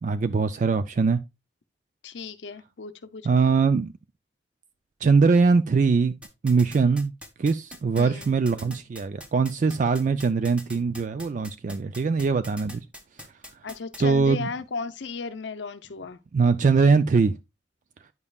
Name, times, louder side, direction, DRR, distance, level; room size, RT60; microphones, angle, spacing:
voice 1, 0.0-1.2 3.2-3.9 5.0-6.1 6.4-7.1 7.4-12.8 14.0-14.5 16.3-17.3, right 4 dB, 45° right, 0.3 m, -22 dB
voice 2, 2.0-3.4 8.0-8.3 13.6-16.2, left 4 dB, 85° left, 0.6 m, -35 dB
sound 1, 6.2-14.0, equal, 5° right, 1.0 m, -42 dB
9.6 x 5.4 x 2.3 m
head